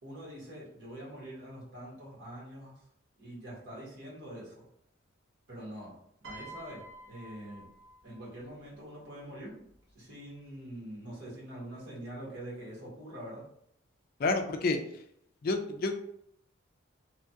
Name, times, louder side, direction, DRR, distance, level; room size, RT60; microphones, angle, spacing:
voice 1, 0.0-2.7 3.1-4.6 5.5-5.9 6.2-7.7 8.0-9.6 9.9-13.4, right 1 dB, 65° right, -5 dB, 1.4 m, -44 dB
Piano, 6.2-8.6 9.6-9.9, right 1 dB, 85° right, 1.0 m, -49 dB
voice 2, 14.2-14.8 15.4-16.0, left 3 dB, 45° left, 6 dB, 0.3 m, -29 dB
3.1 x 2.3 x 2.7 m, 0.71 s
head